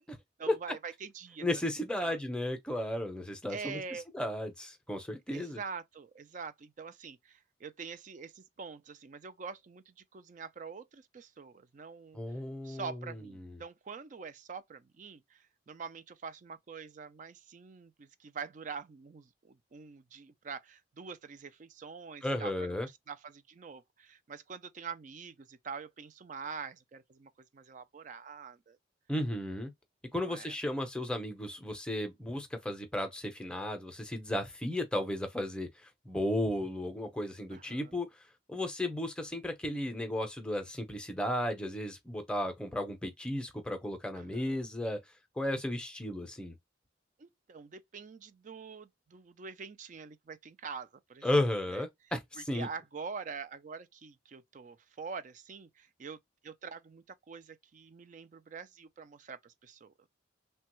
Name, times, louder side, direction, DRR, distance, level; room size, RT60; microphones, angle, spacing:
voice 1, 0.4-1.5 2.0-2.2 3.5-4.1 5.3-12.2 12.6-22.8 23.1-28.8 30.3-30.5 37.5-38.0 44.1-44.6 47.2-51.3 51.7-51.8 52.4-60.1, right 5 dB, 40° right, 0.3 m, -45 dB
voice 2, 1.4-5.6 12.1-13.6 22.2-22.9 29.1-29.7 30.1-45.0 45.4-46.5 51.2-52.7, left 1 dB, 5° left, 0.6 m, -34 dB
3.3 x 2.2 x 3.0 m
head